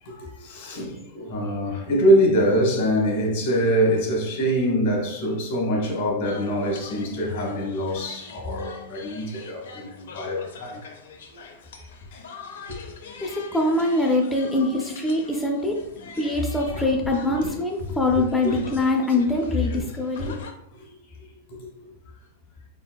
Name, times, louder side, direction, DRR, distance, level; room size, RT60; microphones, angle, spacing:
voice 1, 0.0-10.8 12.1-12.2 12.7-12.8 17.4-17.5 17.8-17.9 18.4-18.6 20.2-20.4 20.8-20.9 21.2-21.9, equal, 65° left, 1.4 m, -24 dB
sound 1, 6.2-20.5, left 5 dB, 85° left, 0.6 m, -44 dB
voice 2, 13.2-15.8 16.2-20.3, left 2 dB, 5° left, 0.4 m, -23 dB
4.0 x 3.7 x 2.2 m
supercardioid pair, 135°, 0 cm